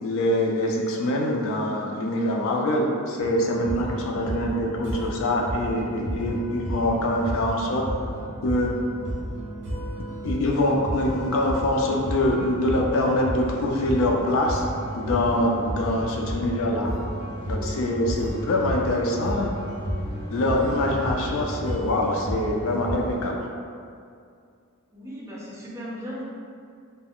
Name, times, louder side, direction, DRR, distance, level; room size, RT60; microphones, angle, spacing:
voice 1, 0.0-7.8 8.4-8.7 10.2-16.9 17.5-19.5 20.3-23.3, left 1 dB, 65° left, 0 dB, 0.4 m, -24 dB
sound 1, 3.2-23.0, equal, 55° right, 0.8 m, -33 dB
sound 2, 14.4-23.2, left 1 dB, 30° left, 0.9 m, -39 dB
voice 2, 24.9-26.2, equal, 15° right, -7 dB, 0.4 m, -37 dB
2.3 x 2.1 x 3.4 m, 2.3 s
head